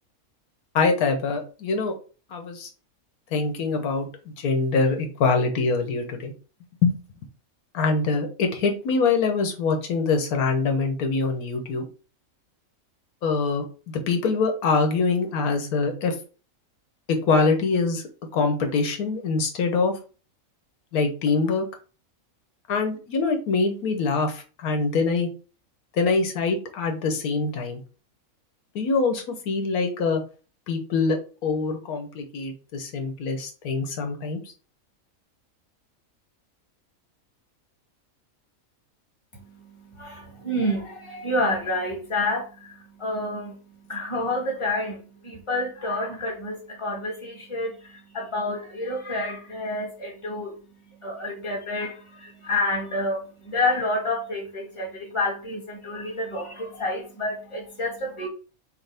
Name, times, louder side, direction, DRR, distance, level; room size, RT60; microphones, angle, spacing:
voice 1, 0.7-1.9 2.3-2.7 3.3-4.1 4.4-6.3 6.8-7.0 7.7-11.8 13.2-16.1 17.1-18.0 18.3-19.9 20.9-21.6 22.7-25.3 26.0-27.8 28.7-30.2 30.7-31.2 31.4-34.4, left 4 dB, 90° left, 1.4 m, -24 dB
voice 2, 39.3-50.6 51.0-58.3, left 1 dB, 20° left, 1.3 m, -29 dB
6.5 x 2.3 x 3.4 m
omnidirectional pair, 1.5 m